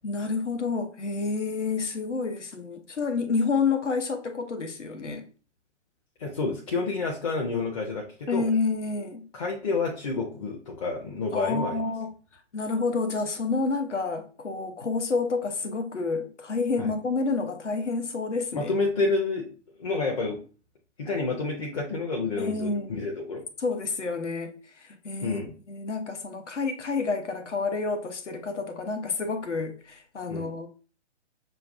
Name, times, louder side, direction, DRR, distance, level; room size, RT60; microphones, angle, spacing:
voice 1, 0.0-5.3 8.3-9.3 11.3-12.1 12.5-18.7 22.4-22.9 23.6-25.4 25.7-30.7, left 4 dB, 75° left, 0.9 m, -29 dB
voice 2, 6.2-8.5 9.3-11.8 16.8-16.9 18.5-19.5 19.8-20.4 21.0-23.4 25.2-25.6 30.3-30.5, left 3 dB, 30° left, 0.6 m, -29 dB
6.6 x 2.3 x 2.6 m
figure-of-eight pair, 130°, 36 cm